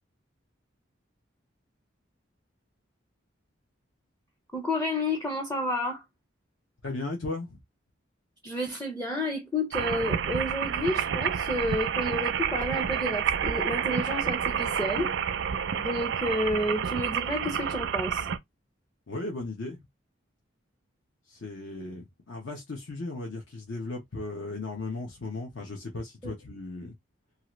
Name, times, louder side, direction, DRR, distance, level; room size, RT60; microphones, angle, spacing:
voice 1, 4.5-6.0 8.4-15.1 15.8-18.3 26.2-26.3, left 1 dB, 10° left, 0.5 m, -30 dB
voice 2, 6.8-7.6 19.1-19.8 21.2-26.9, left 2 dB, 70° left, 0.8 m, -36 dB
sound 1, 9.7-18.4, right 7 dB, 60° right, 0.4 m, -29 dB
2.8 x 2.4 x 3.0 m
head